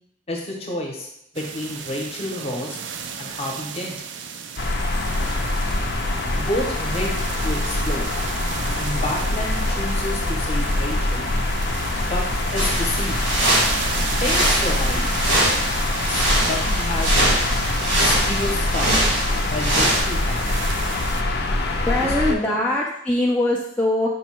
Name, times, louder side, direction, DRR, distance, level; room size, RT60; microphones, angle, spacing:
voice 1, 0.3-1.1 1.3-2.8 3.2-4.0 6.4-8.1 8.8-11.3 12.0-12.2 12.5-13.2 14.2-15.2 16.1-17.1 18.0-19.1 19.5-20.6 22.0-22.6, left 1 dB, 35° left, -1 dB, 0.8 m, -29 dB
sound 1, 1.3-21.2, right 7 dB, 70° right, 0.4 m, -35 dB
sound 2, 4.6-22.3, left 2 dB, 55° left, 0.5 m, -24 dB
sound 3, 12.6-20.0, right 1 dB, 90° right, 1.6 m, -23 dB
voice 2, 21.9-24.1, left 1 dB, 5° left, -4 dB, 0.4 m, -22 dB
5.3 x 2.2 x 4.3 m, 0.78 s
head